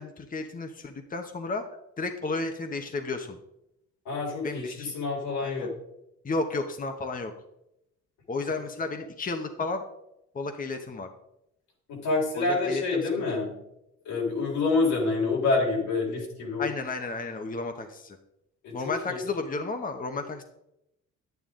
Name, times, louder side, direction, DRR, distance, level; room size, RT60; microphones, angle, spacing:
voice 1, 0.0-1.6 2.0-3.4 4.4-4.9 5.4-5.7 6.2-7.3 8.3-9.8 10.3-11.1 12.3-13.0 16.6-18.2 18.7-20.4, left 3 dB, 30° left, 5 dB, 1.1 m, -32 dB
voice 2, 4.0-5.7 11.9-13.5 14.0-16.7 18.6-19.2, left 3 dB, 85° left, -3 dB, 4.2 m, -27 dB
10.5 x 9.4 x 3.8 m, 0.83 s
cardioid pair, 90°, 30 cm